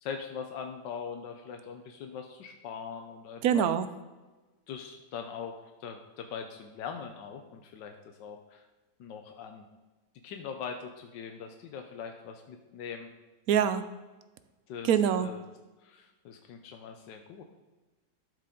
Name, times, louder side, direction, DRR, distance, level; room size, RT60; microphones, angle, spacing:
voice 1, 0.0-3.7 4.7-8.6 9.0-9.6 10.2-13.1 14.7-14.9 15.2-15.4 15.8-17.4, left 6 dB, 90° left, 5 dB, 1.4 m, -41 dB
voice 2, 3.4-3.9 13.5-13.8 14.8-15.3, right 9 dB, 70° right, 12 dB, 0.9 m, -24 dB
12.0 x 6.7 x 3.8 m, 1.2 s
omnidirectional pair, 1.9 m